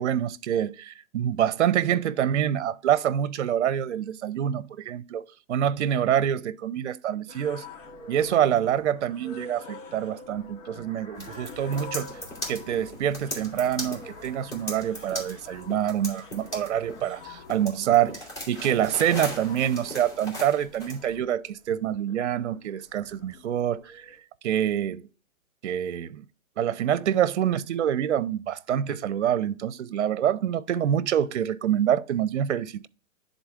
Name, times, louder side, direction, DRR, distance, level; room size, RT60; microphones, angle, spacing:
voice 1, 0.0-7.6 8.1-12.1 12.5-24.2 24.4-25.0 25.6-26.2 26.6-32.9, right 10 dB, 55° right, 0.6 m, -26 dB
sound 1, 7.3-24.2, left 3 dB, 65° left, 1.5 m, -46 dB
sound 2, 11.2-21.0, left 1 dB, 25° left, 2.9 m, -39 dB
10.5 x 4.0 x 3.5 m
hypercardioid pair, 165°, 41 cm